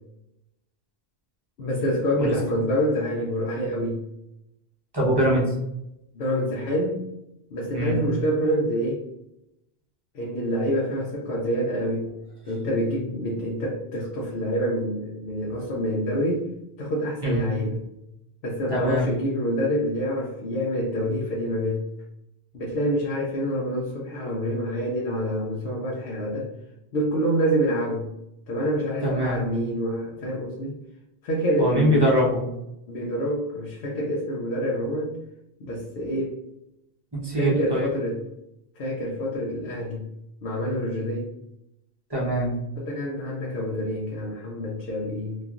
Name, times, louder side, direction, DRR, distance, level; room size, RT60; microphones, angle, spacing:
voice 1, 1.6-4.0 6.1-7.1 7.5-9.0 10.1-12.1 12.5-16.5 16.8-17.8 18.4-21.8 22.5-26.5 26.9-28.1 28.5-30.8 31.2-32.0 32.9-35.1 35.6-36.4 37.3-38.2 38.8-40.1 40.4-41.3 42.8-45.4, equal, 65° left, -3 dB, 0.8 m, -27 dB
voice 2, 4.9-5.5 7.7-7.9 17.2-17.4 18.7-19.1 29.0-29.4 31.6-32.4 37.1-37.9 42.1-42.5, equal, 25° right, -4 dB, 0.7 m, -23 dB
3.0 x 2.4 x 2.4 m, 0.85 s
omnidirectional pair, 1.1 m